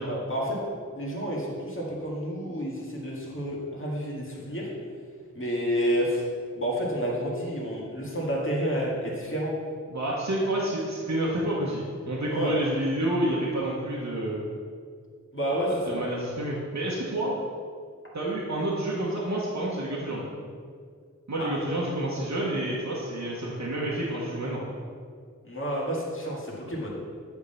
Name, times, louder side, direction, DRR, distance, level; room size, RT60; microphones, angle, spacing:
voice 1, 0.0-4.7 5.3-6.3 6.5-9.5 12.3-12.6 15.3-16.1 21.4-21.5 25.4-26.9, equal, 45° left, -4 dB, 1.9 m, -30 dB
voice 2, 9.9-14.4 15.5-17.3 18.1-20.3 21.3-24.6, right 1 dB, 70° right, -5 dB, 1.1 m, -29 dB
8.1 x 3.7 x 5.6 m, 2.1 s
wide cardioid pair, 45°, 30 cm